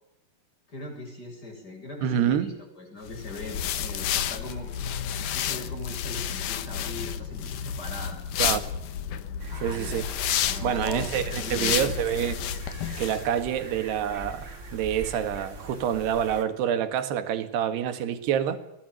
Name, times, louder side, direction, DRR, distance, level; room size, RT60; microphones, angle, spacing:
voice 1, 0.7-4.7 5.3-8.2 9.5-10.0 10.4-11.8, left 2 dB, 20° left, 7.8 m, -40 dB
voice 2, 2.0-2.5 8.4-8.7 9.6-10.0 10.6-12.4 13.0-18.6, right 9 dB, 75° right, 3.8 m, -27 dB
sound 1, 3.1-13.3, left 9 dB, 65° left, 2.2 m, -31 dB
sound 2, 9.4-16.4, right 1 dB, 20° right, 2.8 m, -41 dB
22.5 x 19.0 x 9.3 m
omnidirectional pair, 4.9 m